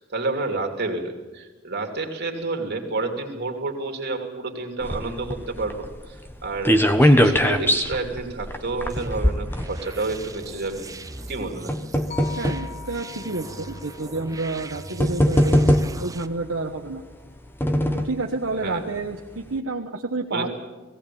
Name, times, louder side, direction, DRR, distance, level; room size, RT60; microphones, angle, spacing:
voice 1, 0.0-10.9 11.3-11.7 18.6-18.8 20.3-20.5, right 3 dB, 55° right, 4 dB, 2.9 m, -29 dB
sound 1, 4.8-10.3 11.1-12.7 13.5-13.6 14.6-14.7 15.0-16.2 17.1-18.2 18.6-18.7 19.0-19.1, equal, 10° left, 1.0 m, -21 dB
sound 2, 8.9-16.3, right 2 dB, 15° right, 0.7 m, -39 dB
sound 3, 12.1-16.3, left 9 dB, 45° left, 4.1 m, -43 dB
voice 2, 12.4-15.7 16.0-17.0 18.0-20.5, right 3 dB, 75° right, 1 dB, 1.2 m, -29 dB
18.5 x 17.0 x 8.6 m, 1.2 s
head